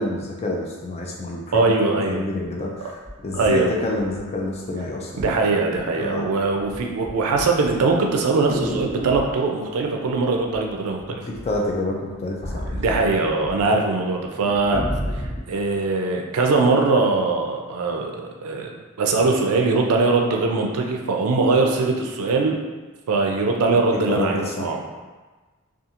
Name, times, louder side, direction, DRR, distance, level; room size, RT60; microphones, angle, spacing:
voice 1, 0.0-1.7 2.1-5.5 5.9-6.3 11.1-13.0 23.7-25.0, left 1 dB, 30° left, -2 dB, 0.3 m, -28 dB
voice 2, 1.5-2.2 3.3-3.7 5.2-11.2 12.7-14.8 15.1-15.2 15.5-22.6 23.1-24.8, right 3 dB, 80° right, 1 dB, 0.4 m, -21 dB
sound 1, 2.4-2.5 3.0-4.5 5.2-5.4 5.7-6.2 6.5-9.4 10.5-11.0 11.3-13.6 13.9-14.0 14.4-15.5 16.1-16.2, equal, 45° left, 1.3 m, -31 dB
2.4 x 2.4 x 2.8 m, 1.3 s
head